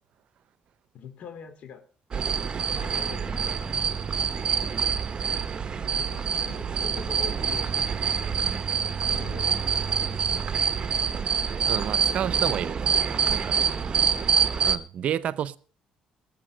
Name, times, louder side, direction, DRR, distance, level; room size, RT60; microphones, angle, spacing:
voice 1, 0.9-1.8 2.7-3.7 6.0-7.7 9.1-10.2, left 7 dB, 60° left, 2.7 m, -43 dB
sound 1, 2.1-14.8, right 6 dB, 35° right, 1.2 m, -26 dB
voice 2, 11.7-13.0 13.3-13.6 14.6-15.6, right 10 dB, 60° right, 0.8 m, -30 dB
19.0 x 7.4 x 6.4 m
cardioid pair, 95°, 2 cm